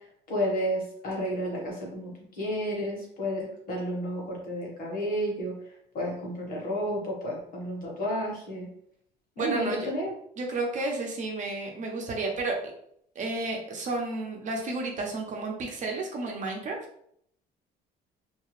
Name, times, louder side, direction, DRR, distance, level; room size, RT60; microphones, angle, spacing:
voice 1, 0.3-5.5 5.9-8.7 9.4-10.1, equal, 55° left, -2 dB, 1.3 m, -31 dB
voice 2, 9.4-9.9 10.4-12.6 13.1-16.8, right 3 dB, 45° right, 1 dB, 0.8 m, -32 dB
2.8 x 2.3 x 3.1 m, 0.68 s
cardioid pair, 110°, 17 cm